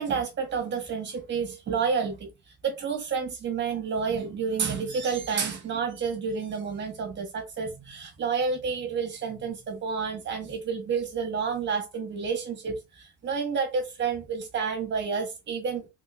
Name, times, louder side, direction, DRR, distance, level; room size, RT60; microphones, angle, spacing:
voice 1, 0.0-2.3 2.6-15.9, right 5 dB, 35° right, 1.3 m, -30 dB
3.7 x 3.4 x 2.5 m
cardioid pair, 155°, 31 cm